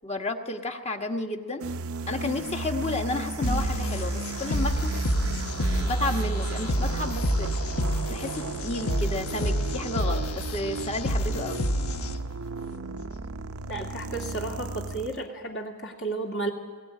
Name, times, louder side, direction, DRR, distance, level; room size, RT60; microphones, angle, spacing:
voice 1, 0.0-1.6 2.1-4.9 5.8-7.5 8.1-10.3 10.5-11.6, left 2 dB, 30° left, 5 dB, 1.3 m, -31 dB
sound 1, 1.6-15.3, right 3 dB, 75° right, 0.7 m, -33 dB
sound 2, 3.4-12.4, equal, 85° left, 1.1 m, -29 dB
voice 2, 13.7-16.5, right 2 dB, 55° left, 1 dB, 2.6 m, -33 dB
21.5 x 17.0 x 9.9 m, 1.4 s
head